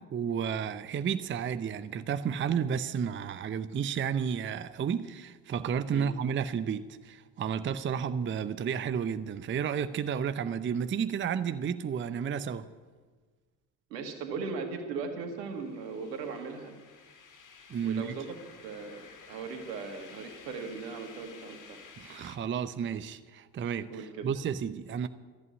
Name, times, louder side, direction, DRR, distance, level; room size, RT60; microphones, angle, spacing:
voice 1, 0.0-12.7 17.7-18.1 22.0-25.1, right 7 dB, 25° right, 0.7 m, -32 dB
voice 2, 13.9-16.8 17.8-18.4 18.6-21.8 23.9-24.3, right 4 dB, 75° right, 2.0 m, -38 dB
sound 1, 15.3-22.4, left 5 dB, 40° left, 2.2 m, -53 dB
13.5 x 8.8 x 9.5 m
figure-of-eight pair, 55°, 50 cm